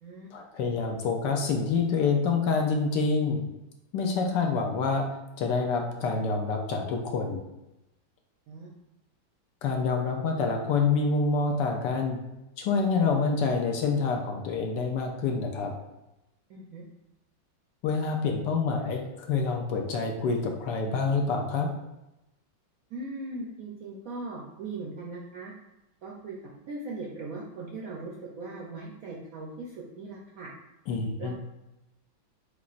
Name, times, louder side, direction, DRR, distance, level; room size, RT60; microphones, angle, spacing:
voice 1, 0.3-3.4 3.9-5.0 5.4-7.4 9.6-12.2 12.6-15.7 17.8-21.7 30.9-31.3, left 4 dB, 75° left, 2 dB, 1.2 m, -27 dB
voice 2, 16.5-16.8 22.9-25.5 26.0-26.4 26.7-30.5 31.2-31.3, right 3 dB, 70° right, -3 dB, 0.8 m, -39 dB
6.9 x 2.4 x 2.4 m, 0.93 s
omnidirectional pair, 2.1 m